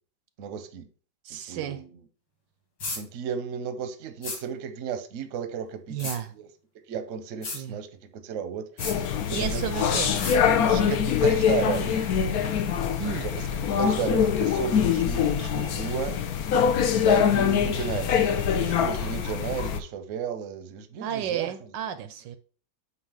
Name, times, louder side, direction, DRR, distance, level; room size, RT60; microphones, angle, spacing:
voice 1, 0.4-0.9 1.3-1.9 2.9-6.0 6.4-6.5 6.9-7.9 8.1-10.0 10.6-12.0 13.2-13.4 13.8-16.1 17.1-18.1 18.6-21.5, right 7 dB, 55° right, 0.9 m, -33 dB
voice 2, 1.2-1.8 5.9-6.3 7.5-7.8 9.3-10.2 13.0-13.2 21.0-22.4, right 9 dB, 75° right, 1.2 m, -32 dB
sound 1, 2.8-3.0 4.2-4.4 6.0-6.2 7.4-7.6 8.8-9.0 10.2-10.4, left 2 dB, 85° left, 3.3 m, -33 dB
sound 2, 8.8-19.8, left 8 dB, 65° left, 1.0 m, -24 dB
8.2 x 2.8 x 5.6 m
omnidirectional pair, 2.0 m